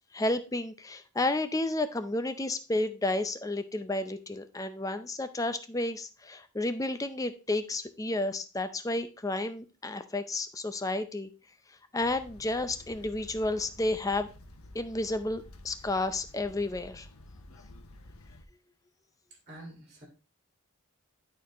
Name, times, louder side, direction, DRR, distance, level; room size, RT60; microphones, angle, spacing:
voice 1, 0.1-11.3 11.9-14.3 14.7-17.1, left 2 dB, 15° left, 10 dB, 0.5 m, -31 dB
sound 1, 12.0-18.4, left 1 dB, 80° left, 0.9 m, -51 dB
voice 2, 19.5-20.1, right 1 dB, 30° right, -1 dB, 1.9 m, -47 dB
11.5 x 4.4 x 3.0 m, 0.33 s
head